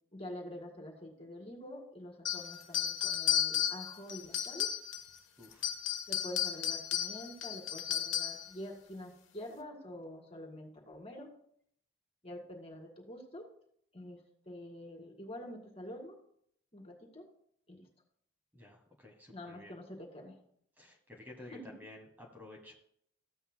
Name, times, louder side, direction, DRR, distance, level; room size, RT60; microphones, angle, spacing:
voice 1, 0.1-4.7 6.1-11.3 12.2-13.5 13.9-14.2 14.5-16.2 16.7-17.3 17.7-17.9 19.3-20.4 21.5-21.6, left 1 dB, 30° left, 1 dB, 2.1 m, -46 dB
sound 1, 2.2-5.1 5.5-8.5, left 10 dB, 90° left, 1.1 m, -34 dB
voice 2, 5.4-5.7 18.5-19.7 20.8-22.7, left 2 dB, 10° right, 1 dB, 1.3 m, -52 dB
14.5 x 8.1 x 2.2 m, 0.67 s
head